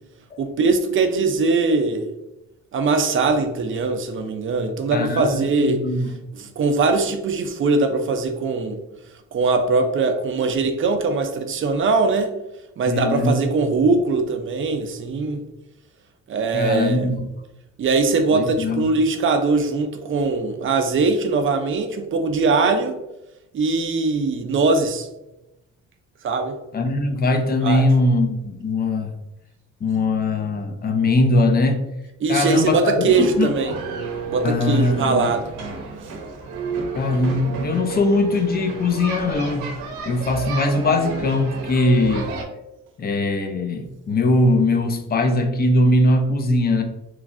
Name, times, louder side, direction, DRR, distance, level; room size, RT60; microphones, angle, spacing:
voice 1, 0.4-2.1 2.7-5.8 6.3-8.8 9.3-12.3 12.8-15.4 16.3-17.1 17.8-23.0 23.5-25.1 26.2-26.6 27.6-27.8 32.2-33.7 34.3-35.5, right 3 dB, 45° right, 7 dB, 0.5 m, -21 dB
voice 2, 4.9-6.1 12.9-13.4 16.5-17.3 18.3-18.8 26.7-29.1 29.8-31.8 32.3-33.8 34.4-35.3 36.9-39.7 40.0-42.4 43.0-46.8, left 2 dB, 30° left, 6 dB, 0.4 m, -21 dB
sound 1, 33.1-42.4, right 4 dB, 85° right, 0.6 m, -31 dB
3.1 x 2.5 x 2.4 m, 0.93 s
cardioid pair, 90°, 30 cm